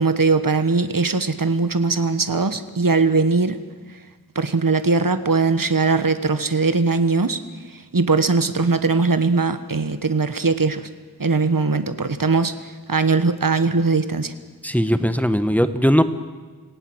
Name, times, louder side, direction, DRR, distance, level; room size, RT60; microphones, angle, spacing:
voice 1, 0.0-3.6 4.3-7.4 7.9-10.9 11.2-12.5 12.9-14.3, right 4 dB, 60° right, 11 dB, 1.3 m, -20 dB
voice 2, 14.6-16.0, equal, 5° left, 11 dB, 1.3 m, -18 dB
27.0 x 17.5 x 7.9 m, 1.4 s
wide cardioid pair, 40°, 37 cm